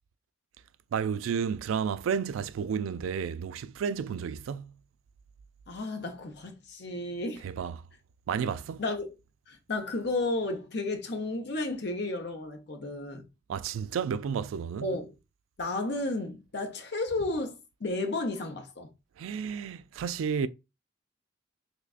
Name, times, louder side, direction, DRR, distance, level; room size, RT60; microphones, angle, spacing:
voice 1, 0.9-4.7 7.4-7.7 8.3-8.8 13.5-14.9 19.2-20.5, right 7 dB, 90° right, 0.3 m, -31 dB
voice 2, 5.7-7.5 8.8-9.1 9.5-13.2 14.8-15.2 15.6-18.9, left 2 dB, 55° left, 0.8 m, -33 dB
3.5 x 3.2 x 2.4 m
head